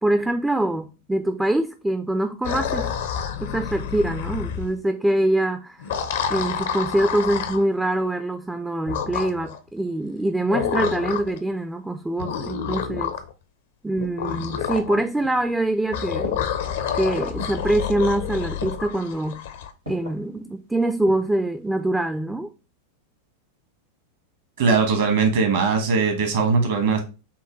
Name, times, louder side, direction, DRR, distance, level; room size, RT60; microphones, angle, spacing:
voice 1, 0.0-2.9 3.4-5.8 6.3-13.1 13.8-16.4 16.9-19.5 19.9-22.5, right 1 dB, 5° right, 0.3 m, -24 dB
sound 1, 2.4-4.7 5.8-7.6 8.9-9.6 10.5-11.4 12.2-13.3 14.0-15.0 15.9-19.7, left 8 dB, 55° left, 0.5 m, -28 dB
sound 2, 15.0-15.8 16.2-16.8 17.4-17.8 18.6-19.0 19.9-20.3 20.8-21.4 21.7-21.8, left 1 dB, 85° right, 1.9 m, -38 dB
voice 2, 24.6-27.0, right 4 dB, 60° right, 1.1 m, -20 dB
5.8 x 2.2 x 3.0 m
figure-of-eight pair, 90°, 0 cm